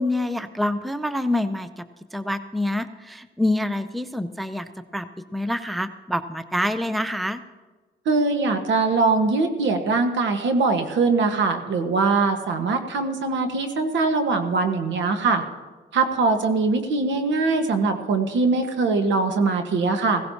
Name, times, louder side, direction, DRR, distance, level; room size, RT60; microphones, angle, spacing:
voice 1, 0.0-7.4, left 1 dB, ahead, 12 dB, 0.5 m, -26 dB
voice 2, 8.0-15.4 15.9-20.2, right 3 dB, 70° right, 6 dB, 1.4 m, -22 dB
16.5 x 16.0 x 2.8 m, 1.3 s
cardioid pair, 90°, 20 cm